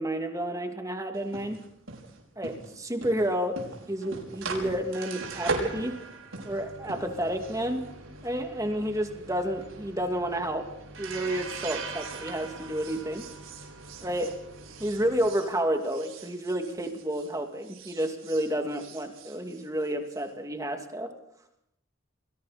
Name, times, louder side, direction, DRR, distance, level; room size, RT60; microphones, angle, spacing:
voice 1, 0.0-1.6 2.4-3.6 3.9-6.0 6.4-7.8 8.2-10.6 11.0-13.3 14.0-14.3 14.8-21.1, right 1 dB, 15° right, 4 dB, 2.5 m, -30 dB
sound 1, 1.1-17.3 17.6-20.2, right 3 dB, 85° right, 5.6 m, -40 dB
29.5 x 22.0 x 4.3 m, 0.76 s
head